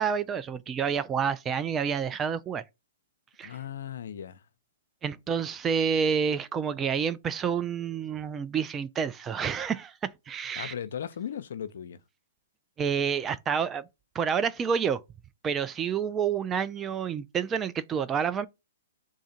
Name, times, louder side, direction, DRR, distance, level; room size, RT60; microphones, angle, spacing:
voice 1, 0.0-2.6 3.4-3.5 5.0-10.7 12.8-13.8 14.1-15.0 15.4-18.5, right 7 dB, 20° right, 0.4 m, -29 dB
voice 2, 3.4-4.4 10.6-12.0, left 9 dB, 70° left, 0.6 m, -37 dB
3.6 x 2.4 x 4.2 m
hypercardioid pair, 135°, 0 cm